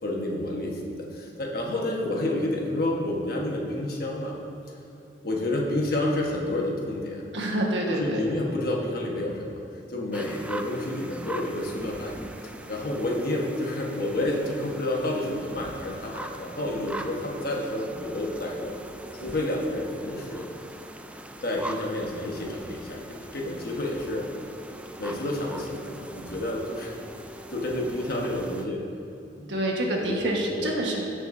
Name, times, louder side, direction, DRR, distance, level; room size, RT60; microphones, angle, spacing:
voice 1, 0.0-4.4 5.2-7.2 7.9-9.6 9.9-12.2 12.7-18.8 19.2-20.4 21.4-24.3 25.0-27.0 27.5-28.8 29.4-29.6 30.0-30.7, left 1 dB, 55° left, -2 dB, 1.2 m, -29 dB
voice 2, 7.3-8.3 29.5-31.0, right 1 dB, 90° right, -1 dB, 1.4 m, -27 dB
sound 1, 10.1-28.6, right 1 dB, 5° right, 0.3 m, -41 dB
15.5 x 6.3 x 2.6 m, 2.8 s
head